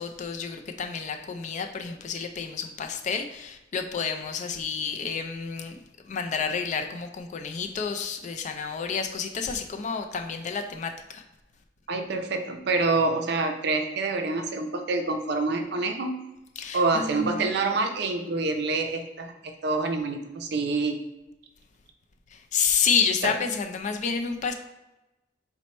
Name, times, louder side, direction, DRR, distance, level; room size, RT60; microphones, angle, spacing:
voice 1, 0.0-11.2 16.6-17.5 22.3-24.5, left 6 dB, 40° left, 6 dB, 0.4 m, -30 dB
voice 2, 11.9-16.2 16.7-21.0 23.2-23.3, right 3 dB, 65° right, 5 dB, 0.5 m, -27 dB
4.4 x 2.1 x 4.1 m, 0.98 s
head